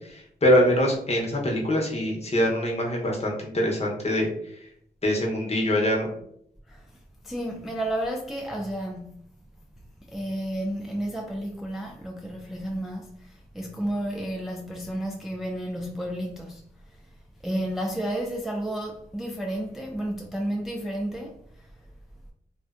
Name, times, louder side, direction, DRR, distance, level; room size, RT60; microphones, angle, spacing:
voice 1, 0.0-4.3 5.0-6.1, equal, 35° left, 0.8 m, -24 dB
voice 2, 7.2-9.3 10.0-16.6 17.4-21.7, right 1 dB, ahead, 0.3 m, -32 dB
2.4 x 2.1 x 2.4 m
cardioid pair, 55°, 18 cm